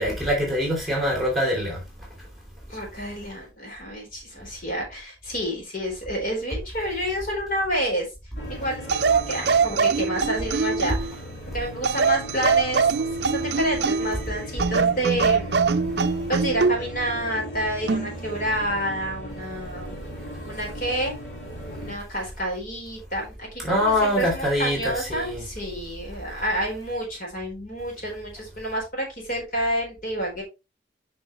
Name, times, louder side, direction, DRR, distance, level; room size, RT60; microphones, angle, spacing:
voice 1, 0.0-1.8 23.6-25.4, left 1 dB, ahead, 2.8 m, -24 dB
voice 2, 2.7-8.1 8.5-11.1 11.5-15.7 16.3-20.0 20.5-21.1 21.7-30.4, equal, 50° left, 4.1 m, -29 dB
sound 1, 8.3-22.0, equal, 85° left, 3.4 m, -38 dB
sound 2, 8.9-11.1 11.8-14.2 14.6-16.8 17.9-18.1, right 5 dB, 65° right, 0.5 m, -23 dB
8.9 x 5.5 x 3.1 m
head